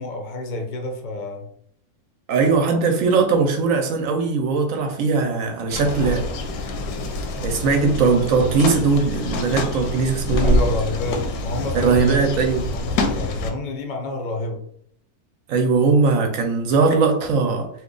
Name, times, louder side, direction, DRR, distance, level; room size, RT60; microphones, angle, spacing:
voice 1, 0.0-1.5 10.4-12.2 12.7-14.6, left 2 dB, 55° left, 0.5 m, -29 dB
voice 2, 2.3-6.3 7.4-10.6 11.7-12.7 15.5-17.7, right 4 dB, 70° right, 0.9 m, -19 dB
sound 1, 5.7-13.5, left 2 dB, 85° left, 1.1 m, -26 dB
2.9 x 2.2 x 3.7 m
omnidirectional pair, 1.6 m